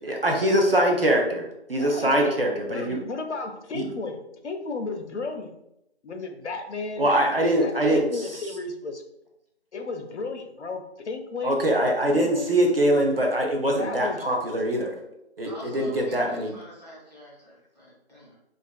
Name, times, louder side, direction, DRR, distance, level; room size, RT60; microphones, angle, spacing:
voice 1, 0.0-3.0 3.7-3.9 7.0-8.3 11.4-15.0 15.4-16.5, right 1 dB, 60° right, 1 dB, 0.4 m, -23 dB
voice 2, 1.8-2.4 2.7-5.6 6.0-7.1 7.6-9.0 9.7-11.6 12.1-12.5 13.8-14.3 15.0-15.1, left 3 dB, 85° left, 6 dB, 0.5 m, -34 dB
voice 3, 15.5-18.4, equal, 40° right, -6 dB, 0.8 m, -46 dB
2.4 x 2.3 x 2.2 m, 0.84 s
figure-of-eight pair, 175°, 34 cm